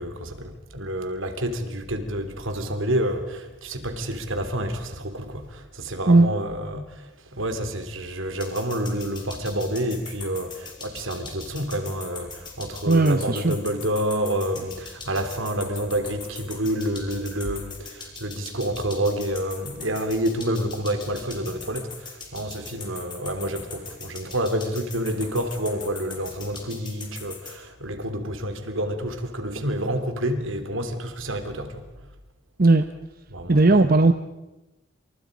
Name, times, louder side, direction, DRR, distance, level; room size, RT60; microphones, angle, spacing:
voice 1, 0.0-31.9 33.3-33.9, equal, 70° right, 3.2 m, -28 dB
sound 1, 8.4-27.6, left 5 dB, 20° left, 5.2 m, -40 dB
voice 2, 12.9-13.5 32.6-32.9 33.5-34.1, right 2 dB, 45° right, 0.9 m, -16 dB
29.5 x 27.5 x 5.2 m
head